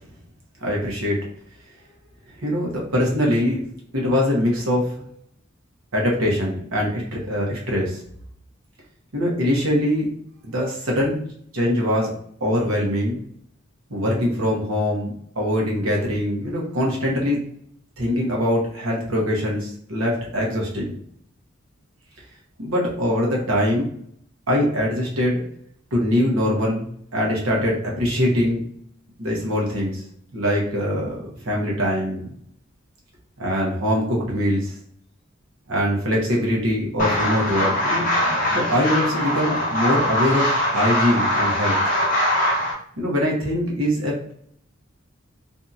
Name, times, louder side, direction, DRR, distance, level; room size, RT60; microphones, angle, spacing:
voice 1, 0.6-1.2 2.4-3.6 3.9-5.0 5.9-8.0 9.1-10.1 10.4-11.2 11.5-12.1 12.4-13.2 13.9-17.4 18.0-20.9 22.6-23.9 24.5-25.4 25.9-28.6 29.2-30.0 30.3-32.3 33.4-34.7 35.7-38.0 38.5-41.8 43.0-44.3, equal, 85° right, -2 dB, 0.9 m, -23 dB
sound 1, 37.0-42.7, left 1 dB, 40° left, 0.7 m, -22 dB
2.7 x 2.6 x 2.4 m, 0.65 s
head